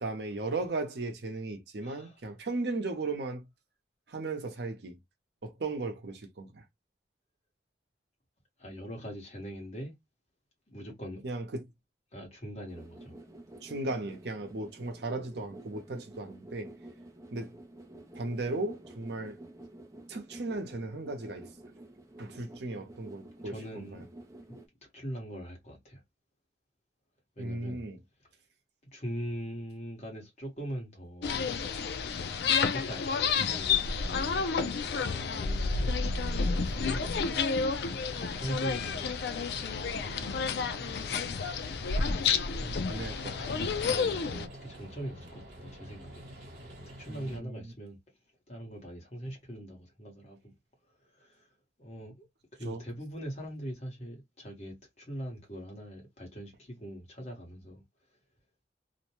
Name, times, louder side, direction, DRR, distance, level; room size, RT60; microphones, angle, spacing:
voice 1, 0.0-3.4 4.1-5.0 5.4-6.6 11.2-11.6 13.6-16.7 17.3-17.5 18.1-19.4 20.1-21.4 22.2-23.9 27.4-28.0 42.9-43.4 47.1-47.7 52.6-52.8, right 2 dB, 70° right, 0.7 m, -36 dB
voice 2, 1.8-2.2 8.6-9.9 10.7-11.2 12.1-13.1 23.4-24.0 24.5-24.6 24.9-26.0 27.4-27.8 28.9-31.6 32.6-35.9 36.3-39.2 39.5-40.2 42.0-43.3 43.6-46.3 47.0-48.0 48.5-50.5 51.0-51.5 51.8-52.2 52.6-57.8, equal, 40° left, 1.2 m, -42 dB
sound 1, 12.7-24.7, right 1 dB, 15° right, 0.5 m, -50 dB
sound 2, 31.2-44.5, left 5 dB, 65° left, 0.4 m, -30 dB
sound 3, 34.3-47.4, equal, 50° right, 1.2 m, -47 dB
2.5 x 2.2 x 2.9 m
head